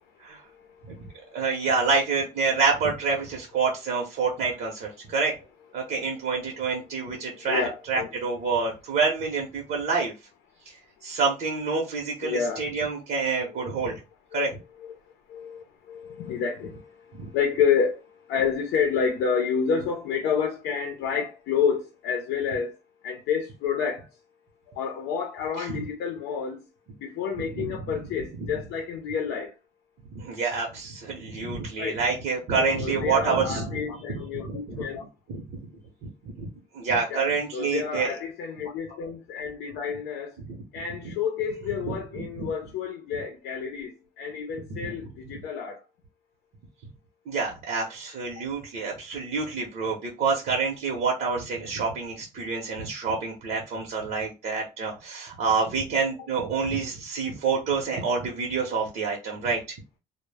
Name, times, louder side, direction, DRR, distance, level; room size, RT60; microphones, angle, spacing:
voice 1, 0.5-1.3 7.2-8.1 12.2-12.6 13.5-14.0 14.3-14.5 14.8-15.0 15.3-22.8 23.0-24.1 24.7-26.6 27.0-29.5 31.8-32.0 32.6-35.0 37.1-40.4 40.7-45.8 48.4-48.5, left 6 dB, 85° left, 0.5 m, -29 dB
voice 2, 1.3-5.4 5.7-10.1 10.6-10.8 11.0-14.0 14.3-14.5 17.2-17.3 25.6-25.8 27.6-27.7 28.4-28.5 30.1-34.9 35.3-35.6 36.0-36.1 36.4-36.5 36.7-38.1 40.5-40.6 41.8-41.9 42.4-42.5 47.3-59.8, right 4 dB, 65° right, 0.8 m, -27 dB
2.1 x 2.0 x 3.3 m
cardioid pair, 110°, 17 cm